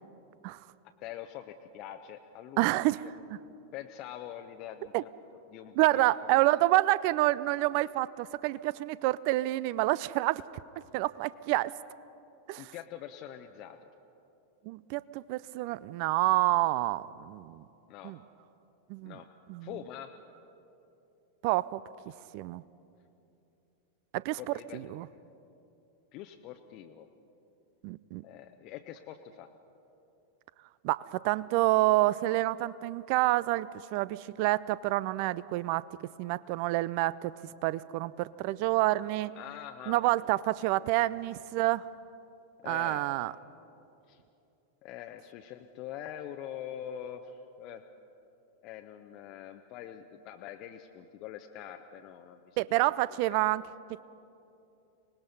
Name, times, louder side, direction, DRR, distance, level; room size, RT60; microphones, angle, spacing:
voice 1, 0.8-2.7 3.7-5.1 5.5-6.1 12.6-13.9 17.9-18.1 19.0-19.3 19.6-20.1 24.4-24.8 26.1-27.1 28.2-29.5 39.4-40.3 40.8-40.9 42.6-43.0 44.1-44.2 44.8-47.8 48.6-52.6 53.2-53.4, left 10 dB, 40° left, 5 dB, 0.8 m, -44 dB
voice 2, 2.6-3.4 4.9-5.0 5.8-10.4 10.9-11.7 12.5-12.7 14.6-17.6 18.0-18.2 18.9-19.2 19.5-19.7 21.4-21.8 22.3-22.6 24.1-24.4 24.7-25.1 27.8-28.2 30.8-35.9 36.2-37.3 37.6-39.3 39.9-41.9 42.7-43.3 52.6-53.6 53.9-54.0, right 18 dB, 45° right, 19 dB, 0.4 m, -28 dB
25.0 x 19.5 x 5.6 m, 2.8 s
figure-of-eight pair, 90°, 0 cm